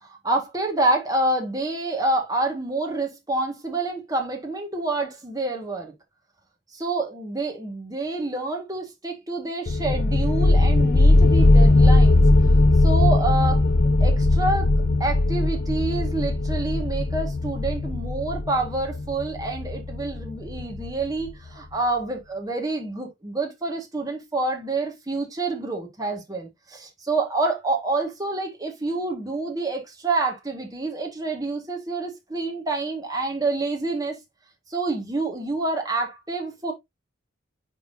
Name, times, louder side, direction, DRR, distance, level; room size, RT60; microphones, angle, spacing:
voice 1, 0.0-5.9 6.8-12.2 12.8-13.6 14.0-14.7 15.0-34.2 34.7-36.7, right 2 dB, 20° right, 1.7 m, -27 dB
sound 1, 9.7-21.1, left 2 dB, 55° left, 0.5 m, -19 dB
9.3 x 3.7 x 2.7 m
head